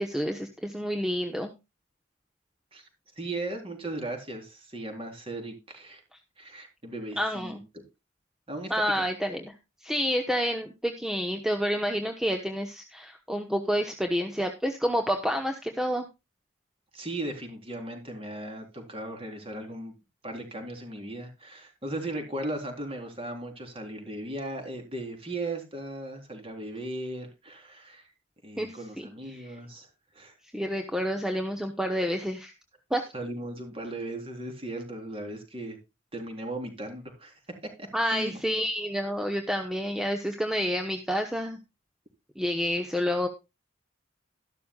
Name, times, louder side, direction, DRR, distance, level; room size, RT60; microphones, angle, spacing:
voice 1, 0.0-1.5 7.2-7.6 8.7-9.5 9.8-16.1 28.6-29.1 30.5-32.5 32.9-33.0 37.9-41.6 42.4-43.3, equal, ahead, 5 dB, 1.0 m, -29 dB
voice 2, 3.2-6.0 6.4-7.8 8.5-8.7 16.9-19.9 20.2-28.1 28.4-29.9 30.1-30.3 33.1-35.8 36.1-37.3 37.8-38.4, right 1 dB, 30° right, 5 dB, 3.7 m, -37 dB
13.5 x 12.0 x 2.3 m, 0.25 s
head